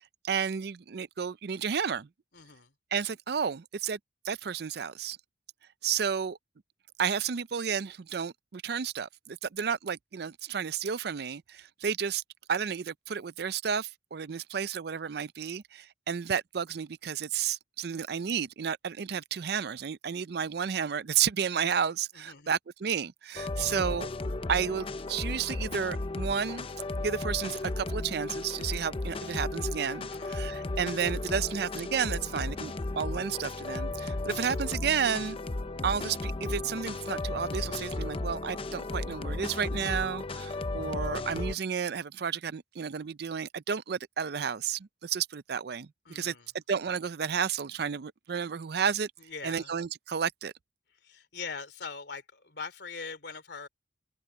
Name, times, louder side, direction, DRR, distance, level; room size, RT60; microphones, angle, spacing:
voice 1, 0.2-2.1 2.9-4.0 4.2-5.2 5.8-6.4 7.0-12.2 12.5-24.1 24.5-26.7 27.0-35.4 35.8-49.1 49.4-50.5, right 7 dB, 65° right, 0.5 m, -32 dB
voice 2, 2.3-2.7 22.2-22.5 30.1-30.5 46.1-46.5 49.3-49.7 51.0-53.7, left 5 dB, 70° left, 3.0 m, -42 dB
sound 1, 23.4-41.6, left 2 dB, 30° left, 0.6 m, -35 dB
head